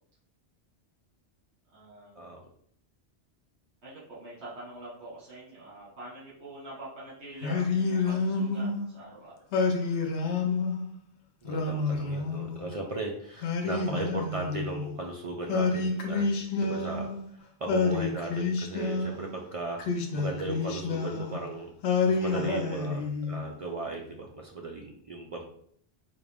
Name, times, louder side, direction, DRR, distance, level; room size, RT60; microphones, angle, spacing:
voice 1, 1.7-2.2 3.8-9.5 22.5-22.6, right 1 dB, 75° right, -9 dB, 1.6 m, -45 dB
Singing, 7.4-8.9 9.5-10.8 11.4-12.8 13.4-14.9 15.5-17.3 17.7-19.3 19.8-21.4 21.8-23.4, left 4 dB, 85° left, 0.9 m, -29 dB
voice 2, 11.4-16.3 16.6-21.7 22.0-25.4, right 2 dB, 55° right, 1 dB, 0.3 m, -37 dB
4.0 x 2.5 x 3.4 m, 0.64 s
omnidirectional pair, 1.1 m